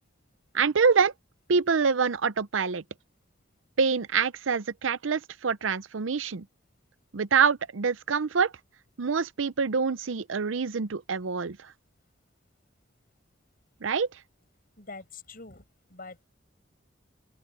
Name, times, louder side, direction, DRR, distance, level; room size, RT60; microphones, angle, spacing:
voice 1, 0.5-1.1 1.5-2.8 3.8-6.5 7.1-8.5 9.0-11.6 13.8-14.1, right 5 dB, 90° right, 0.7 m, -25 dB
voice 2, 14.8-16.2, left 3 dB, 50° left, 7.2 m, -45 dB
open air
head